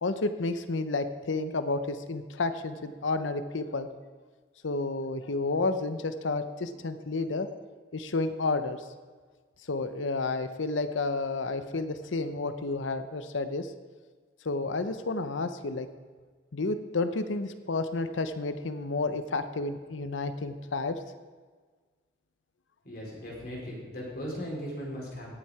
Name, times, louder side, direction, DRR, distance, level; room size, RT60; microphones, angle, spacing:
voice 1, 0.0-3.9 4.6-7.5 7.9-8.8 9.7-13.7 14.4-15.9 16.5-21.0, left 3 dB, 90° left, 10 dB, 0.8 m, -31 dB
voice 2, 22.8-25.3, equal, 50° left, -4 dB, 4.1 m, -38 dB
17.5 x 7.4 x 4.8 m, 1.5 s
head